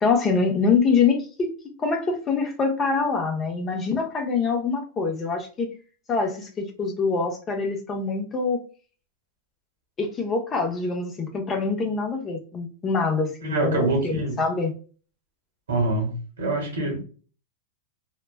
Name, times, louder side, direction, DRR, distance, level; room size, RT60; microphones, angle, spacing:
voice 1, 0.0-1.5 1.8-5.7 6.1-8.6 10.0-14.7, left 4 dB, 25° left, 0.7 m, -25 dB
voice 2, 13.4-14.4 15.7-17.0, right 2 dB, 90° right, 1.1 m, -25 dB
3.0 x 2.1 x 2.2 m
hypercardioid pair, 120°, 0 cm